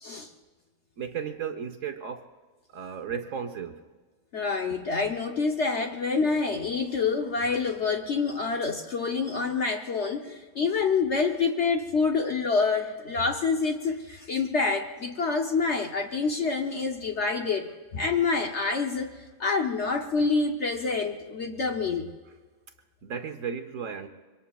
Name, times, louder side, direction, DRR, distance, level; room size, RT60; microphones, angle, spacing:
voice 1, 1.0-2.3 2.7-3.8 23.0-24.1, right 7 dB, 60° right, 0.9 m, -34 dB
voice 2, 4.3-19.1 19.4-22.1, left 4 dB, 55° left, 0.7 m, -27 dB
26.0 x 23.5 x 2.3 m
omnidirectional pair, 2.1 m